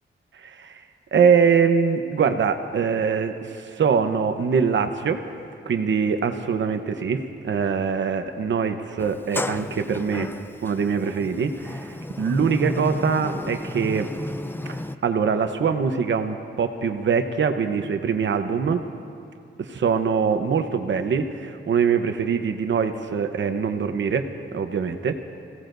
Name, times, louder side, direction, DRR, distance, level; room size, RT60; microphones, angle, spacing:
voice 1, 0.4-0.8 1.1-5.2 5.7-10.3 10.6-14.1 14.7-18.8 19.6-24.2 24.5-25.2, right 6 dB, 75° right, 7 dB, 1.0 m, -23 dB
Sliding door, 9.0-14.9, left 1 dB, 10° left, 0.5 m, -32 dB
28.5 x 17.0 x 2.7 m, 2.6 s
cardioid pair, 85°, 19 cm